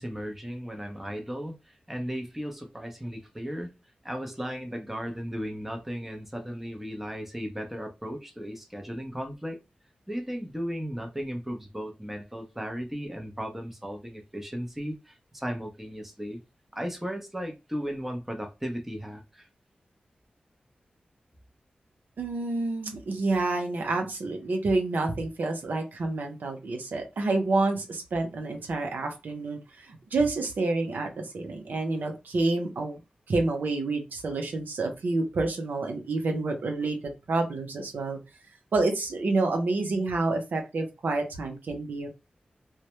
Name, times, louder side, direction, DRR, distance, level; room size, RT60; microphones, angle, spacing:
voice 1, 0.0-3.7 4.0-9.6 10.1-16.4 16.7-19.5, equal, 5° right, 0.6 m, -36 dB
voice 2, 22.2-33.0 33.3-38.2 38.7-42.1, right 3 dB, 85° right, 0.6 m, -28 dB
2.1 x 2.0 x 2.9 m
wide cardioid pair, 75°, 3 cm